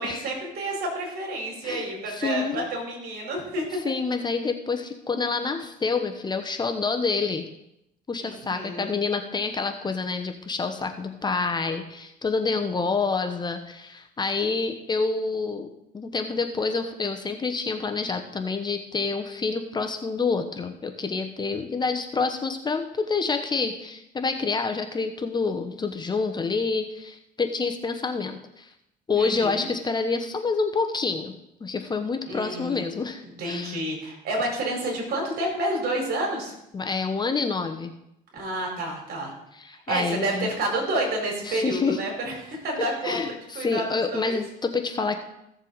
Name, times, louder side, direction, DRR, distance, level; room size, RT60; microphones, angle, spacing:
voice 1, 0.0-3.7 8.2-9.0 29.1-29.7 32.2-32.8 33.4-36.5 38.3-39.3 39.9-44.4, right 1 dB, 70° right, 0 dB, 4.5 m, -29 dB
voice 2, 1.6-2.6 3.8-7.5 8.1-15.7 15.9-28.7 29.1-31.3 31.6-33.8 36.7-37.9 39.5-40.5 41.4-42.0 43.0-45.2, left 4 dB, 25° left, 6 dB, 1.0 m, -28 dB
15.0 x 7.2 x 4.1 m, 0.82 s
cardioid pair, 110°, 17 cm